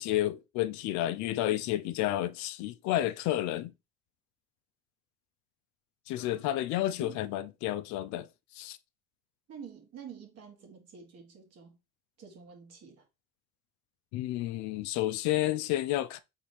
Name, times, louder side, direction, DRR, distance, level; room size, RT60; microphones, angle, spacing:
voice 1, 0.0-3.7 6.1-8.3 8.5-8.8 14.1-16.2, left 14 dB, 70° left, 0.5 m, -31 dB
voice 2, 9.5-11.8 12.2-13.1, right 7 dB, 55° right, 1.8 m, -48 dB
4.1 x 3.5 x 3.3 m
supercardioid pair, 70°, 30 cm